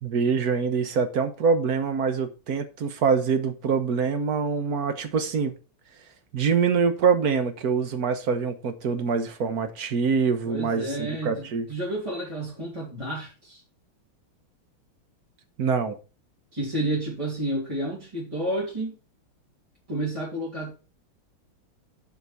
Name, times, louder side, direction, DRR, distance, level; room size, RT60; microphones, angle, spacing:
voice 1, 0.0-5.6 6.3-11.7 15.6-16.0, right 5 dB, 50° right, 1.5 m, -25 dB
voice 2, 10.4-13.6 16.5-19.0 19.9-20.7, right 1 dB, 15° right, 3.0 m, -30 dB
7.8 x 5.2 x 6.9 m
omnidirectional pair, 2.4 m